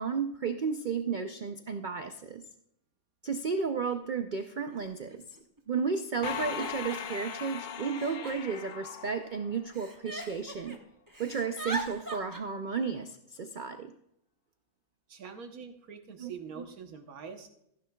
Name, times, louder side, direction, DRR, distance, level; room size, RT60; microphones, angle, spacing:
voice 1, 0.0-2.4 3.2-5.2 5.7-10.8 11.2-13.9 16.2-16.3, right 5 dB, 55° right, 7 dB, 0.5 m, -33 dB
Giggle, 3.6-3.7 4.7-4.8 5.1-5.6 6.2-7.3 7.9-9.3 9.7-10.8 11.1-12.4, right 2 dB, 15° right, 1.0 m, -41 dB
sound 1, 6.2-9.9, left 8 dB, 60° left, 0.5 m, -39 dB
voice 2, 15.1-17.5, right 6 dB, 80° right, 5 dB, 1.5 m, -44 dB
15.0 x 10.5 x 2.3 m, 0.78 s
omnidirectional pair, 1.5 m